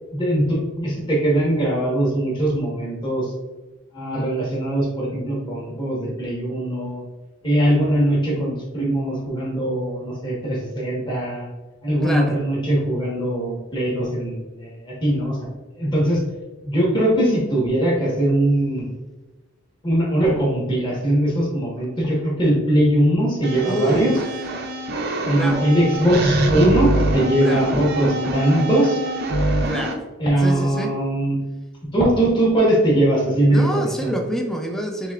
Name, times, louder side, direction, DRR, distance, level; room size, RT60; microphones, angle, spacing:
voice 1, 0.1-3.3 3.9-7.0 7.4-11.4 11.8-15.4 15.8-16.2 16.6-18.9 19.8-24.1 25.3-29.0 30.2-31.4 31.9-34.1, right 1 dB, 20° left, -5 dB, 1.3 m, -21 dB
voice 2, 12.0-12.4 23.6-24.4 25.3-25.7 27.4-27.8 29.4-30.0 30.4-30.9 33.5-35.1, right 1 dB, ahead, 3 dB, 0.4 m, -27 dB
sound 1, 23.4-29.9, right 1 dB, 50° right, 0.6 m, -24 dB
6.2 x 2.8 x 2.5 m, 1.2 s
head